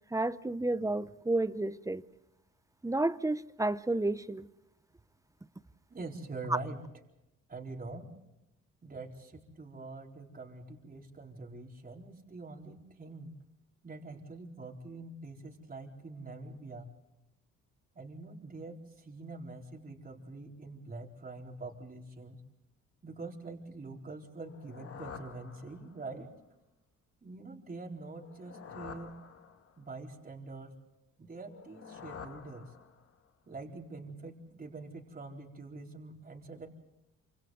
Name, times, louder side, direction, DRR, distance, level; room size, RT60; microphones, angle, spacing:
voice 1, 0.1-2.0 2.8-4.5, right 2 dB, 10° right, 0.8 m, -31 dB
voice 2, 5.9-6.8 7.5-8.1 8.8-13.4 13.8-16.9 17.9-22.4 23.0-26.3 27.2-29.1 29.8-30.8 31.2-32.7 33.5-36.7, right 3 dB, 30° right, 4.3 m, -45 dB
sound 1, 24.4-26.2 28.1-30.0 31.4-33.3, left 6 dB, 50° left, 1.9 m, -49 dB
27.5 x 26.0 x 3.9 m
cardioid pair, 90°, 30 cm